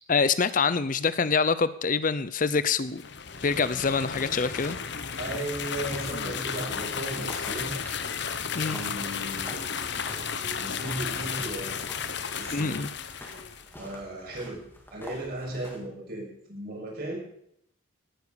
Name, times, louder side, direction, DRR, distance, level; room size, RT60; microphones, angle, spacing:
voice 1, 0.1-3.0 3.4-4.8 8.5-8.8 12.5-12.9, left 5 dB, 40° left, 15 dB, 0.6 m, -25 dB
sound 1, 2.9-13.7, left 6 dB, 55° left, 1.1 m, -34 dB
sound 2, 3.3-15.8, left 1 dB, 10° left, 3.1 m, -47 dB
voice 2, 5.2-7.7 8.6-11.8 12.3-12.8 13.7-14.6 14.9-17.2, right 1 dB, 50° right, -2 dB, 6.5 m, -36 dB
18.0 x 10.0 x 6.9 m, 0.72 s
head